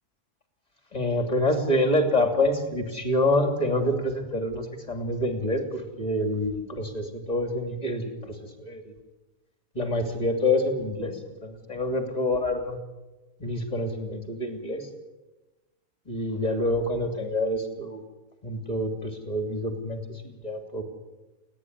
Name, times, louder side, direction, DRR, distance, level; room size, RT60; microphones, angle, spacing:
voice 1, 0.9-8.9 9.7-12.8 13.4-14.9 16.1-18.0 18.4-20.8, left 1 dB, 25° left, 4 dB, 3.2 m, -27 dB
29.5 x 11.0 x 9.8 m, 1.1 s
omnidirectional pair, 1.6 m